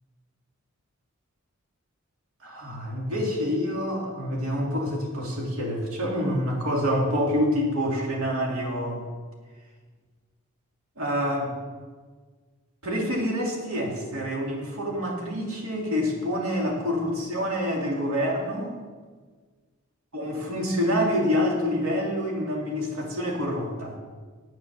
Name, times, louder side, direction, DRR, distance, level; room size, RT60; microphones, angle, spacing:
voice 1, 2.4-9.0 11.0-11.5 12.8-18.7 20.1-24.0, equal, 75° right, -1 dB, 2.6 m, -27 dB
9.2 x 8.7 x 6.7 m, 1.4 s
head